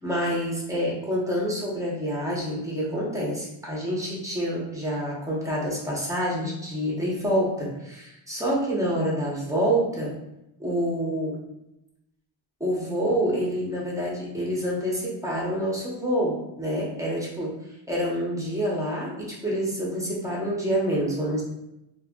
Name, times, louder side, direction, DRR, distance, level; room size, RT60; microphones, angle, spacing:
voice 1, 0.0-10.1 10.6-11.4 12.6-17.5 17.9-21.4, equal, 5° right, -4 dB, 1.0 m, -27 dB
2.5 x 2.4 x 3.6 m, 0.88 s
cardioid pair, 85°, 46 cm